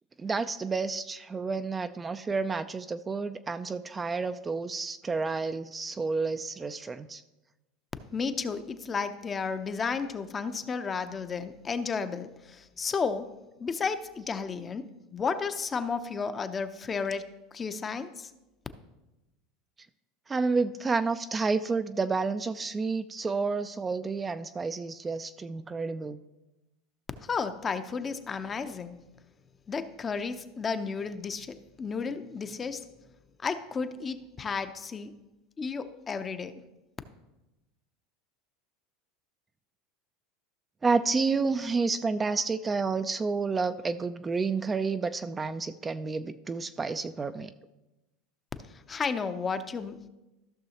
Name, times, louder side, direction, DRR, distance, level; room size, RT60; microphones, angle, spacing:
voice 1, 0.2-7.2 20.3-26.2 40.8-47.5, right 4 dB, 20° right, 10 dB, 0.4 m, -30 dB
voice 2, 8.1-13.3 13.6-18.3 27.3-29.0 29.7-32.8 33.4-35.2 35.6-36.5 48.9-50.1, left 5 dB, 25° left, 10 dB, 0.6 m, -33 dB
14.5 x 6.1 x 2.9 m, 1.0 s
hypercardioid pair, 100°, 0 cm